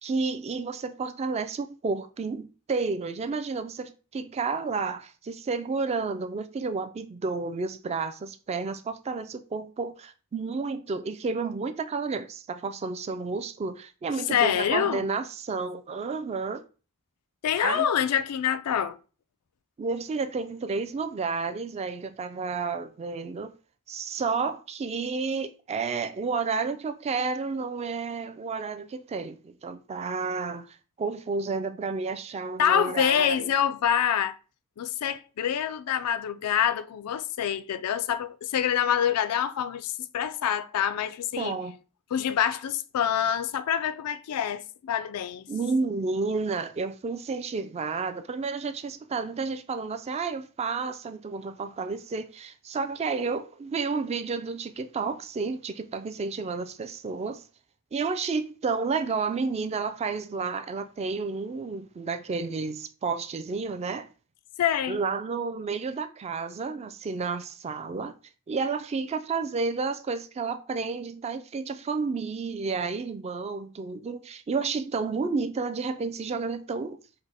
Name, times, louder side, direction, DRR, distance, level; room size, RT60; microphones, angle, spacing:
voice 1, 0.0-16.6 17.6-17.9 19.8-23.5 23.9-33.5 41.4-41.8 45.5-57.4 57.9-64.1 64.9-68.1 68.5-77.0, right 4 dB, 30° right, 0.3 m, -31 dB
voice 2, 14.3-15.1 17.4-19.0 32.6-34.4 34.8-41.5 42.1-45.5 64.6-65.0, left 9 dB, 90° left, 0.4 m, -26 dB
4.9 x 2.0 x 4.2 m
head